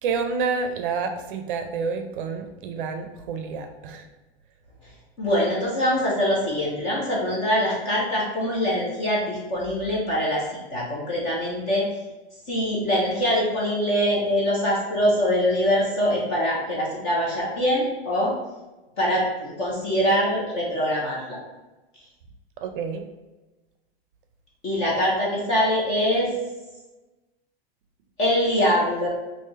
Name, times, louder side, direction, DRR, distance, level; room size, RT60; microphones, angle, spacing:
voice 1, 0.0-4.0 22.6-23.1, right 5 dB, 55° right, 6 dB, 0.5 m, -29 dB
voice 2, 5.2-10.4 10.7-11.8 12.5-18.3 19.0-21.4 24.6-26.3 28.2-29.1, equal, 20° left, -4 dB, 0.3 m, -23 dB
3.1 x 2.6 x 3.5 m, 1.1 s
supercardioid pair, 170°, 31 cm